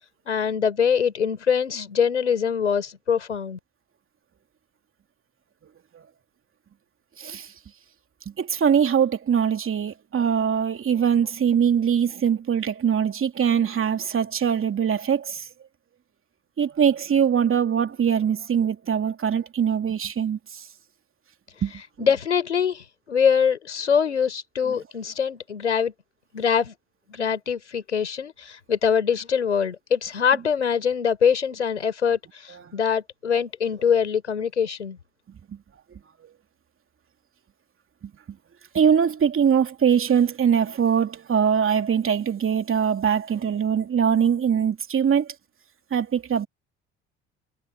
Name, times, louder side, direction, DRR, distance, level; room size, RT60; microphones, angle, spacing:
voice 1, 0.3-3.6 22.0-25.9 26.3-26.7 27.1-35.0, left 7 dB, 90° left, 4.1 m, -23 dB
voice 2, 7.2-7.5 8.4-15.5 16.6-20.6 21.6-21.7 22.0-22.1 24.7-24.8 32.5-32.6 38.7-45.3 45.9-46.5, right 7 dB, 40° right, 2.8 m, -22 dB
figure-of-eight pair, 55°, 34 cm